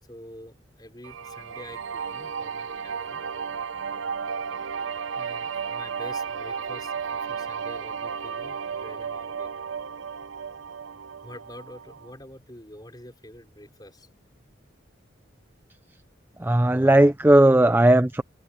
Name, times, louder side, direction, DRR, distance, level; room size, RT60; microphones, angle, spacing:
voice 1, 0.0-3.3 5.1-9.5 11.2-14.1, left 1 dB, 20° left, 5.1 m, -46 dB
sound 1, 1.0-12.1, right 6 dB, 80° right, 0.8 m, -33 dB
voice 2, 16.4-18.2, right 1 dB, 10° right, 0.4 m, -17 dB
head